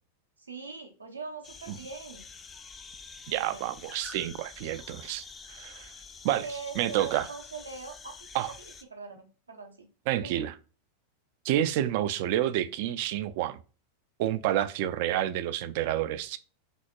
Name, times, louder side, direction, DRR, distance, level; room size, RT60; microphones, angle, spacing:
voice 1, 0.4-2.3 3.4-3.7 5.8-6.1 6.4-8.3 8.6-9.9 10.2-10.5, right 4 dB, 80° right, 0.7 m, -42 dB
sound 1, 1.4-8.8, left 4 dB, 20° left, 0.4 m, -47 dB
voice 2, 3.3-5.9 6.2-6.4 6.8-7.3 8.3-8.5 10.1-10.5 11.4-13.6 14.2-16.4, right 12 dB, 50° right, 0.3 m, -29 dB
5.2 x 2.8 x 2.2 m
figure-of-eight pair, 90°, 0 cm